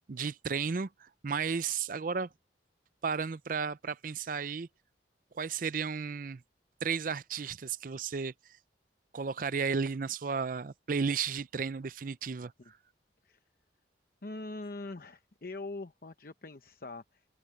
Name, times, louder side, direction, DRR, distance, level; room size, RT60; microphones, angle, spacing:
voice 1, 0.1-2.3 3.0-4.7 5.3-6.4 6.8-8.3 9.1-12.7, right 5 dB, 45° right, 0.5 m, -33 dB
voice 2, 14.2-17.3, left 2 dB, 50° left, 0.9 m, -43 dB
head